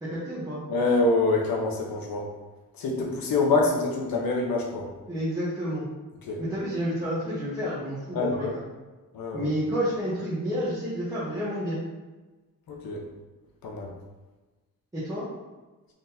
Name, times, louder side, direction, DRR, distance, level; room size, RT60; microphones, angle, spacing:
voice 1, 0.0-0.6 5.1-5.9 6.4-8.6 9.3-11.8 14.9-15.2, equal, 10° right, -10 dB, 0.8 m, -30 dB
voice 2, 0.7-2.3 2.7-4.9 6.2-6.4 8.1-8.6 9.1-9.5 12.7-13.0 13.6-13.9, left 3 dB, 80° left, 1 dB, 0.9 m, -26 dB
3.8 x 3.6 x 2.7 m, 1.2 s
wide cardioid pair, 170°, 34 cm